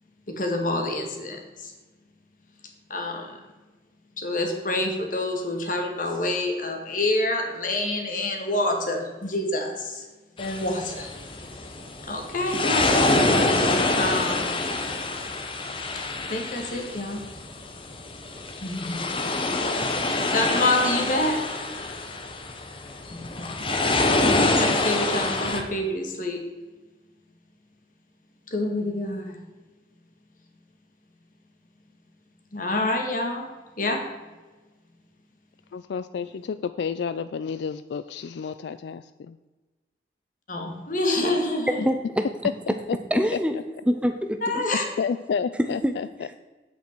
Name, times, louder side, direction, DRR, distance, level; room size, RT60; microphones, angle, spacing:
voice 1, 0.3-1.7 2.9-3.4 4.2-10.0 10.4-11.1 12.0-13.4 14.0-14.5 16.2-17.2 18.6-19.1 20.3-21.4 23.1-23.7 24.1-24.2 24.5-26.4 28.5-29.4 32.5-33.5 33.8-34.0 40.5-41.8 44.4-44.8, left 1 dB, 45° left, 3 dB, 1.7 m, -27 dB
sound 1, 10.4-25.6, left 2 dB, 30° left, 0.9 m, -26 dB
voice 2, 35.7-39.3 45.0-45.8, left 6 dB, 70° left, 12 dB, 0.3 m, -30 dB
voice 3, 41.9-42.3 43.1-43.6 43.9-44.7 45.5-46.4, equal, 5° right, 7 dB, 0.5 m, -26 dB
8.9 x 8.3 x 4.5 m, 1.2 s
head